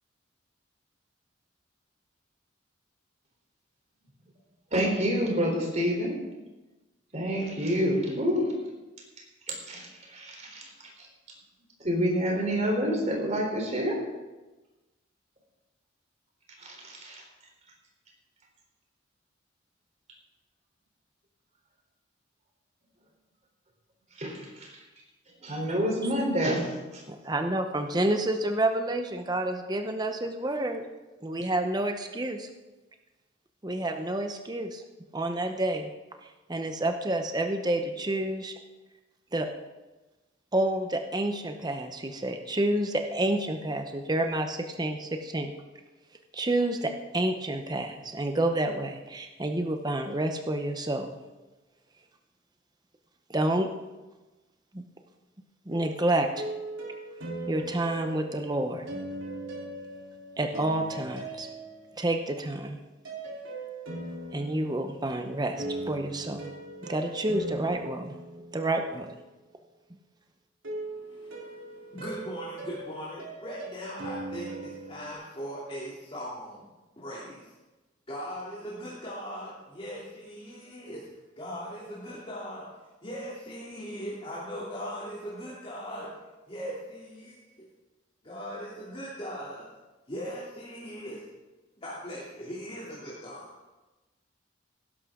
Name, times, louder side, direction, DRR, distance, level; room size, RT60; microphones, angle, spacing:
voice 1, 4.7-6.2 7.1-8.5 9.7-10.7 11.8-14.0 16.6-17.2 24.2-24.7 25.4-27.0, equal, 35° right, 0 dB, 3.6 m, -28 dB
voice 2, 27.1-30.8 31.2-32.5 33.6-34.8 35.1-35.9 36.5-38.5 39.3-39.5 40.5-45.5 46.3-51.1 53.3-53.7 54.7-54.8 55.7-56.4 57.5-58.9 60.4-61.5 62.0-62.8 64.3-66.5 66.8-68.2 68.5-69.2, right 1 dB, 20° right, 5 dB, 0.8 m, -29 dB
sound 1, 55.7-62.3 63.0-69.0 70.6-75.1, right 2 dB, 80° right, 3.4 m, -39 dB
voice 3, 70.7-76.7 77.0-77.5 78.1-81.0 81.4-82.7 83.0-86.1 86.5-87.7 88.2-89.7 90.1-91.2 91.8-93.5, equal, 30° left, -8 dB, 3.0 m, -39 dB
18.5 x 11.0 x 3.8 m, 1.1 s
head